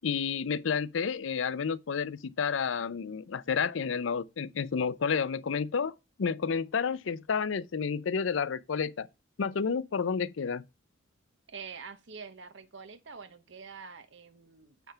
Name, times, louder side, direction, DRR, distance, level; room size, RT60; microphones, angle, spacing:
voice 1, 0.0-5.9 6.2-9.1 9.4-10.6, left 6 dB, 75° left, 0.5 m, -30 dB
voice 2, 11.5-14.9, right 5 dB, 65° right, 0.9 m, -46 dB
9.2 x 3.4 x 5.6 m
head